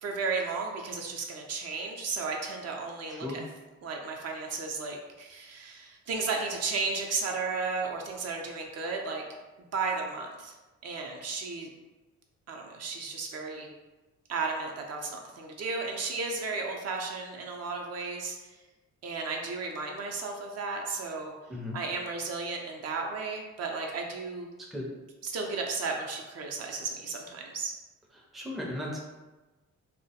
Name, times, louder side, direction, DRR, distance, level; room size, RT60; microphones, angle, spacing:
voice 1, 0.0-3.4 3.8-9.2 9.6-10.5 10.8-11.7 12.5-13.7 14.3-18.6 19.0-21.3 21.7-24.5 25.2-27.7, right 4 dB, 55° right, 1 dB, 0.5 m, -34 dB
voice 2, 3.1-3.4 21.5-21.8 24.6-24.9 28.3-29.0, left 1 dB, ahead, -2 dB, 0.4 m, -36 dB
2.2 x 2.1 x 2.7 m, 1.1 s
cardioid pair, 90°, 30 cm